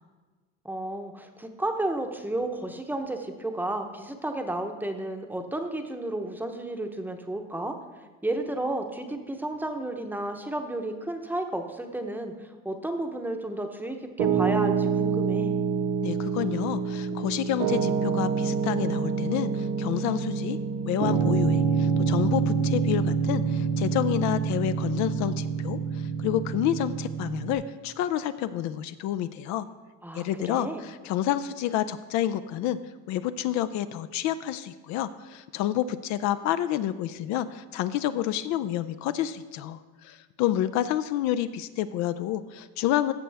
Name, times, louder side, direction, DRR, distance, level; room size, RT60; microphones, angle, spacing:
voice 1, 0.6-7.7 8.2-15.5 30.0-30.8, right 1 dB, 5° right, 5 dB, 0.8 m, -32 dB
Piano, 14.2-27.5, right 6 dB, 85° right, 1.3 m, -27 dB
voice 2, 16.0-20.6 20.8-29.7 30.1-32.8 33.1-43.1, left 12 dB, 60° left, 13 dB, 0.5 m, -29 dB
15.0 x 6.6 x 3.4 m, 1.4 s
cardioid pair, 120°, 32 cm